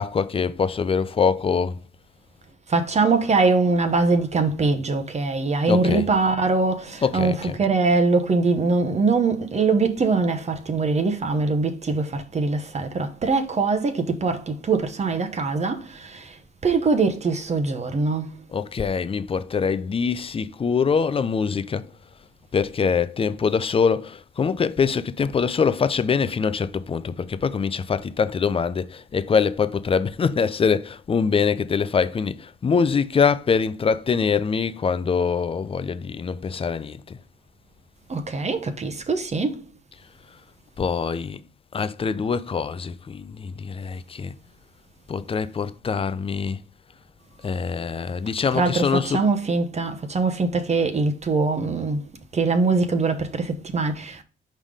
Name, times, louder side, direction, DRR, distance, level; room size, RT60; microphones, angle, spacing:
voice 1, 0.0-1.8 5.7-6.1 7.0-7.6 18.5-21.9 22.5-37.2 40.8-41.4 41.7-44.3 45.1-46.6 47.4-49.3, left 6 dB, 30° left, 0.5 m, -24 dB
voice 2, 2.7-16.4 16.6-18.3 38.1-39.6 48.5-52.0 52.3-54.2, right 3 dB, 35° right, 0.9 m, -22 dB
5.5 x 3.7 x 4.9 m
cardioid pair, 90°, 20 cm